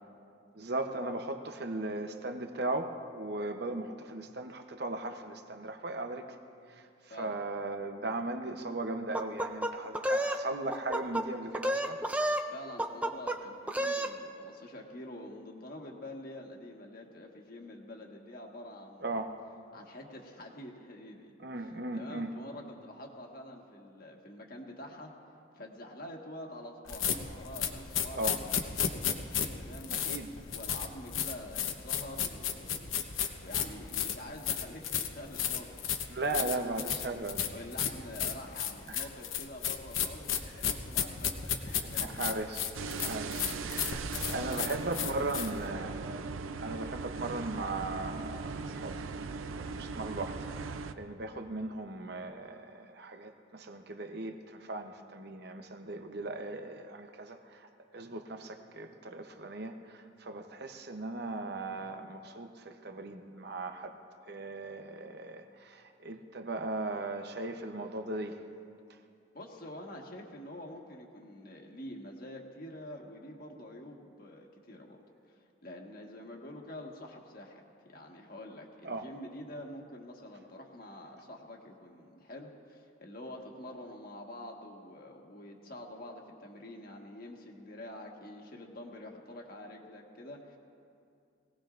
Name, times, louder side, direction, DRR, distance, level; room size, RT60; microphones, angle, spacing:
voice 1, 0.5-6.3 6.7-6.9 7.2-12.0 19.0-19.4 21.4-22.4 28.1-28.4 29.9-30.3 36.1-37.5 38.9-39.1 41.7-42.7 43.0-44.0 44.3-46.1 46.6-49.0 49.5-50.5 51.0-57.7 57.9-64.0 64.3-68.4 78.8-79.1, right 2 dB, 55° right, 6 dB, 0.8 m, -37 dB
sound 1, 9.1-10.4 10.7-11.2 11.5-12.5 12.8-13.4 13.7-14.1, right 1 dB, 5° right, 0.5 m, -30 dB
voice 2, 12.5-19.1 19.7-21.3 21.6-25.1 25.5-29.0 29.6-30.2 30.5-36.7 37.5-42.3 43.2-45.8 69.3-77.6 77.9-90.6, left 1 dB, 45° left, 0 dB, 1.5 m, -47 dB
sound 2, 26.9-45.7, left 8 dB, 85° left, 1.0 m, -33 dB
sound 3, 42.7-50.9, right 4 dB, 85° right, 0.6 m, -39 dB
22.0 x 17.5 x 2.5 m, 2.4 s
head